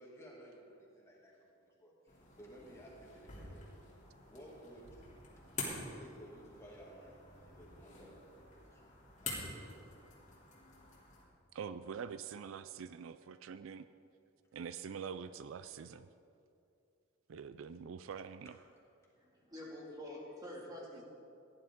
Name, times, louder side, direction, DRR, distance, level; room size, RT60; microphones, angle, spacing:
voice 1, 0.0-3.7 4.3-5.1 5.6-8.9 9.2-10.0, equal, 15° left, -4 dB, 2.4 m, -56 dB
sound 1, 2.1-11.2, left 3 dB, 40° left, 2.9 m, -48 dB
voice 2, 11.5-13.9 14.5-16.1 17.3-18.6, right 6 dB, 70° right, 13 dB, 0.4 m, -45 dB
voice 3, 19.2-21.0, left 1 dB, 20° right, -3 dB, 2.1 m, -47 dB
17.0 x 11.0 x 3.7 m, 2.6 s
head